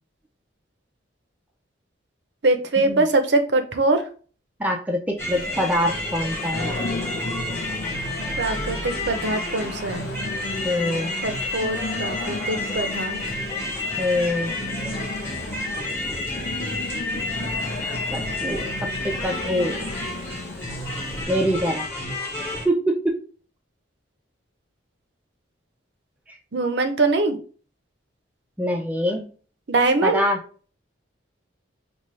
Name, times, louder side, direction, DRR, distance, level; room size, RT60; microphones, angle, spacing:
voice 1, 2.4-4.0 8.4-10.1 11.2-13.2 26.5-27.4 29.7-30.2, right 2 dB, 60° right, 7 dB, 0.6 m, -23 dB
voice 2, 4.6-6.7 10.6-11.1 14.0-14.5 18.1-18.7 19.0-19.7 21.3-21.9 22.6-23.2 28.6-29.3 30.0-30.4, equal, 10° right, 1 dB, 0.4 m, -24 dB
Singing, 5.2-21.2, left 2 dB, 80° left, 0.6 m, -35 dB
sound 1, 5.2-22.6, left 1 dB, 15° left, 1.0 m, -30 dB
5.3 x 2.4 x 3.1 m, 0.39 s
head